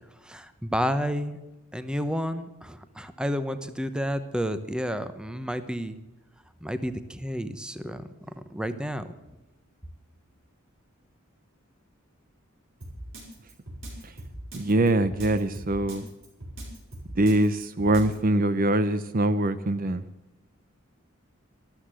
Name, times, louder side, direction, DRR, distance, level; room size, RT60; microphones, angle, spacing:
voice 1, 0.2-1.4 1.7-6.0 6.6-8.1 8.5-9.1, equal, 5° right, 0.9 m, -30 dB
Drum kit, 12.8-18.2, right 1 dB, 65° right, 5.6 m, -41 dB
voice 2, 14.5-16.0 17.2-20.0, right 1 dB, 40° right, 0.7 m, -23 dB
13.5 x 13.0 x 7.7 m
head